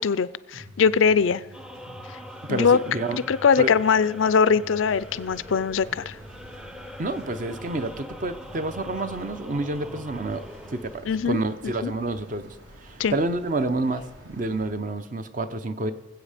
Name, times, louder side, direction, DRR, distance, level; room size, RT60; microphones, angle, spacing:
voice 1, 0.0-1.4 2.5-2.8 3.1-6.2 11.1-11.9 13.0-13.2, left 6 dB, 75° left, 18 dB, 0.4 m, -22 dB
sound 1, 0.5-11.3, equal, 85° right, 2.4 m, -47 dB
sound 2, 1.5-11.0, left 1 dB, 5° right, 0.5 m, -43 dB
voice 2, 2.5-3.2 3.6-3.7 7.0-12.6 12.8-15.9, right 2 dB, 40° right, 10 dB, 0.7 m, -29 dB
sound 3, 4.8-14.7, right 1 dB, 70° right, 3.0 m, -49 dB
20.0 x 8.1 x 5.0 m, 1.3 s
head